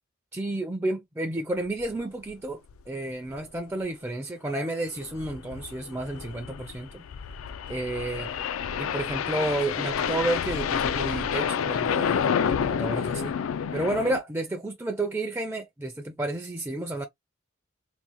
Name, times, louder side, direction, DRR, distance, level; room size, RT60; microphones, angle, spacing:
voice 1, 0.3-2.6 2.9-7.0 7.7-8.3 8.8-13.4 13.7-17.1, right 2 dB, 10° right, 0.4 m, -31 dB
sound 1, 1.8-2.0 2.3-2.4 2.7-2.8 3.3-3.6 4.9-14.2, left 7 dB, 90° left, 0.4 m, -29 dB
3.6 x 2.3 x 2.9 m
head